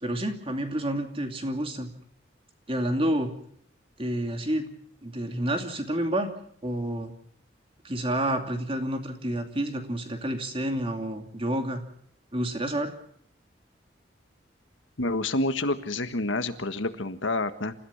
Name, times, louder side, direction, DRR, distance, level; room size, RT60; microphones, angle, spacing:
voice 1, 0.0-1.9 2.7-3.3 4.0-4.7 5.0-6.3 6.6-7.1 7.8-11.8 12.3-12.9, right 1 dB, 30° right, 5 dB, 2.6 m, -29 dB
voice 2, 15.0-17.7, left 2 dB, 85° left, 9 dB, 1.6 m, -28 dB
28.0 x 15.0 x 7.2 m, 0.65 s
head